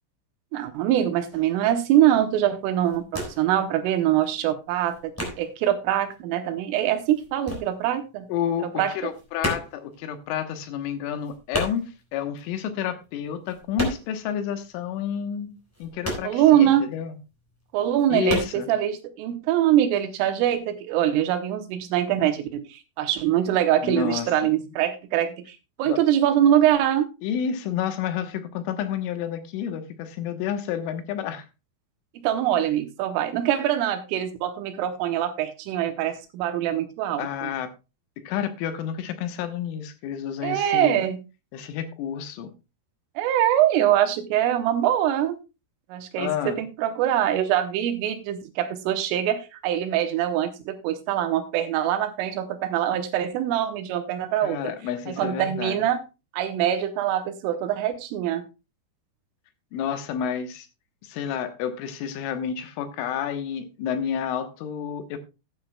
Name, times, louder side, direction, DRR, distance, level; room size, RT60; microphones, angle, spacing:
voice 1, 0.5-5.1 5.4-8.3 8.8-8.9 16.2-16.9 17.7-27.1 32.2-37.5 40.4-41.2 43.2-45.4 45.9-54.7 55.1-56.0 56.3-58.4, right 11 dB, 80° right, 3.5 m, -23 dB
sound 1, 1.3-1.6 2.1-2.4 2.6-3.6 3.9-5.8 6.1-8.3 8.6-14.3 14.6-14.7 15.1-17.0 17.4-17.5 17.9-18.6, equal, 5° left, 3.4 m, -33 dB
voice 2, 8.3-17.2 18.1-18.7 23.8-24.5 25.8-26.0 27.2-31.5 37.2-37.7 38.2-41.0 41.5-42.5 46.2-46.6 54.4-55.8 59.7-60.7 61.0-65.2, left 8 dB, 75° left, 3.5 m, -30 dB
16.0 x 9.6 x 2.2 m
omnidirectional pair, 5.9 m